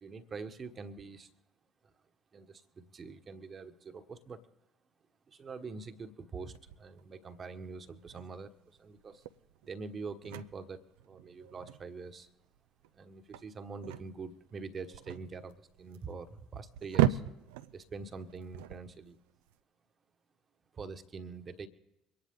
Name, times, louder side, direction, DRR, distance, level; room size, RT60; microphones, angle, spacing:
voice 1, 0.0-1.3 2.3-4.4 5.3-8.5 8.8-9.2 9.6-12.3 12.9-17.2 17.7-19.2 20.7-21.7, right 4 dB, 35° right, 9 dB, 1.4 m, -44 dB
sound 1, 6.4-19.5, right 12 dB, 70° right, 0.5 m, -38 dB
24.0 x 10.5 x 3.8 m, 0.96 s
figure-of-eight pair, 55°, 0 cm